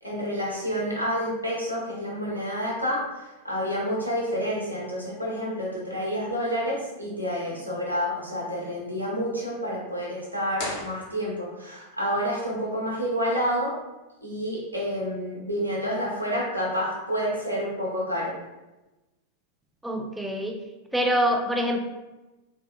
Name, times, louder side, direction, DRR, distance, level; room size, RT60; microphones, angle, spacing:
voice 1, 0.0-13.7 14.2-18.3, equal, 85° right, -4 dB, 1.0 m, -29 dB
sound 1, 10.5-11.7, left 2 dB, 55° left, 1.0 m, -37 dB
voice 2, 19.8-20.6 20.9-21.8, equal, 5° right, 3 dB, 0.4 m, -25 dB
3.8 x 2.8 x 2.3 m, 1.1 s
figure-of-eight pair, 90°, 0 cm